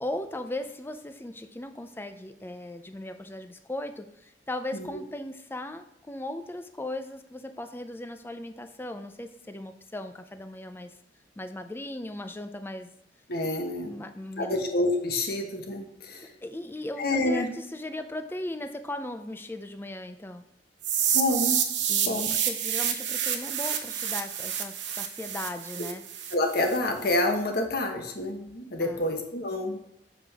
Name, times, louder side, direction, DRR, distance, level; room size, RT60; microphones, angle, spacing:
voice 1, 0.0-10.9 11.4-12.9 13.4-13.5 13.9-14.6 16.1-20.4 21.9-26.0 28.8-29.0, left 1 dB, 10° left, 8 dB, 0.5 m, -37 dB
voice 2, 13.3-14.0 14.4-16.3 17.0-17.5 21.1-21.6 22.1-22.3 26.3-29.8, left 1 dB, 55° left, 3 dB, 1.1 m, -28 dB
sound 1, 20.8-26.8, right 8 dB, 85° right, 0.9 m, -28 dB
7.2 x 5.0 x 3.6 m, 0.80 s
head